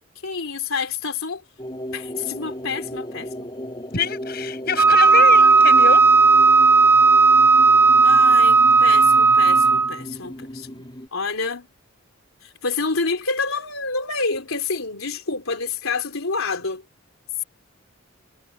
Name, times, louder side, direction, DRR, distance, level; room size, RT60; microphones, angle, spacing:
voice 1, 0.2-1.4 1.9-3.5 8.0-10.8 11.1-11.7 12.4-16.8 17.4-17.5, left 4 dB, 90° left, 3.4 m, -28 dB
sound 1, 1.6-11.1, equal, 25° left, 3.2 m, -35 dB
voice 2, 3.9-6.0, left 5 dB, 50° left, 6.6 m, -25 dB
Wind instrument woodwind instrument, 4.8-10.0, right 4 dB, 10° right, 0.6 m, -14 dB
head